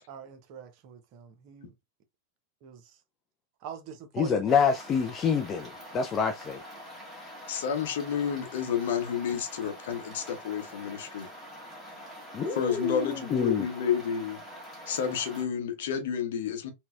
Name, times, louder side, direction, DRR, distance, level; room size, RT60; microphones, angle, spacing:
voice 1, 0.0-1.7 2.6-3.0 3.6-4.5 12.4-12.8, right 7 dB, 45° right, 0.7 m, -44 dB
voice 2, 4.2-6.6 12.3-13.7, left 6 dB, 25° left, 0.3 m, -27 dB
sound 1, 4.5-15.4, equal, ahead, 1.5 m, -45 dB
voice 3, 7.5-11.3 12.6-14.4 14.9-16.7, left 8 dB, 55° left, 0.8 m, -30 dB
4.0 x 2.2 x 2.3 m
figure-of-eight pair, 90°, 0 cm